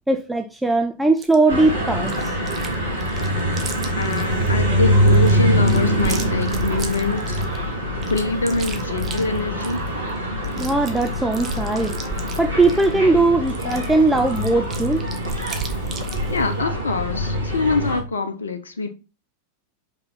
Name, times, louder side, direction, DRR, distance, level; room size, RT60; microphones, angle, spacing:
voice 1, 0.1-2.4 10.5-11.9 12.4-15.1, right 3 dB, 5° right, 0.5 m, -19 dB
Chewing mastication, 1.2-1.4 2.0-2.8 3.0-4.5 5.0-7.6 8.0-9.9 10.2-10.3 10.4-12.9 13.5-16.5, right 5 dB, 25° right, 1.2 m, -34 dB
sound 1, 1.5-18.0, equal, 85° right, 3.2 m, -23 dB
voice 2, 4.0-7.4 8.1-9.8 16.3-18.9, left 3 dB, 70° left, 0.8 m, -24 dB
5.5 x 5.5 x 3.9 m
figure-of-eight pair, 90°, 0 cm